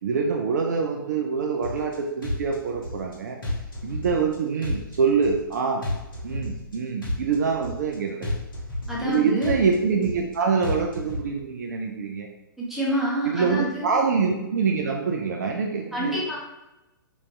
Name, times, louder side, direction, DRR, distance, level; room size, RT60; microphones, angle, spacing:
voice 1, 0.0-3.4 3.8-5.8 6.2-8.3 9.0-12.3 13.3-16.4, right 5 dB, 50° right, 2 dB, 0.4 m, -25 dB
sound 1, 1.6-1.9 2.2-3.1 3.4-4.3 4.6-5.5 5.8-6.7 7.0-7.9 8.2-9.1 9.4-10.3 10.6-11.2, left 1 dB, 70° left, 1.2 m, -31 dB
voice 2, 8.9-9.6 12.6-13.9 15.9-16.4, right 1 dB, 5° right, -7 dB, 1.1 m, -27 dB
3.1 x 2.7 x 3.1 m, 1.0 s
figure-of-eight pair, 115°, 12 cm